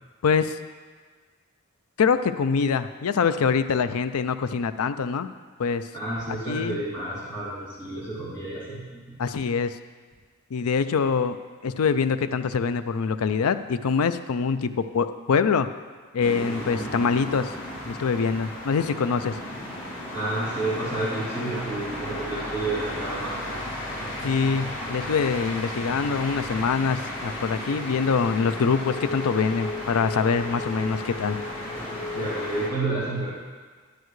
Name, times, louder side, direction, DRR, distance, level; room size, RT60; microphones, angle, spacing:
voice 1, 0.2-0.6 2.0-5.3 5.6-5.9 6.3-6.8 9.2-9.8 10.5-15.7 16.1-17.5 17.9-19.4 24.2-31.4, left 5 dB, 85° left, 11 dB, 0.4 m, -24 dB
voice 2, 5.9-9.2 20.1-23.7 32.1-33.3, right 2 dB, 15° left, -11 dB, 2.9 m, -30 dB
sound 1, 16.2-32.7, left 1 dB, 65° left, 2.5 m, -34 dB
11.0 x 10.0 x 3.2 m, 1.5 s
head